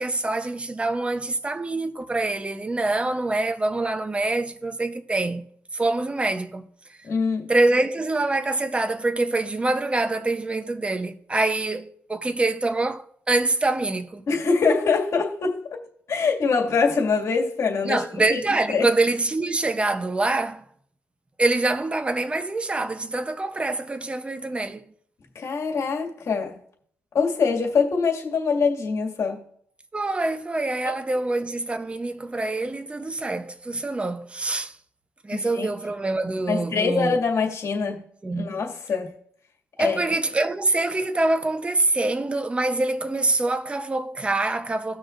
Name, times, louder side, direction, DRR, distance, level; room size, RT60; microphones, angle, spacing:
voice 1, 0.0-5.5 5.7-6.7 7.5-14.3 17.8-20.6 21.4-24.9 29.9-34.8 35.2-37.2 38.2-38.5 39.8-45.0, right 2 dB, 20° right, 0.8 m, -25 dB
voice 2, 7.0-7.5 14.3-15.6 16.1-18.0 18.3-18.4 18.7-18.9 25.3-26.6 27.1-29.4 35.3-35.7 36.5-38.0 38.4-39.2 39.8-40.0, left 5 dB, 60° left, 2.1 m, -24 dB
17.0 x 6.2 x 2.6 m
cardioid pair, 95°, 5 cm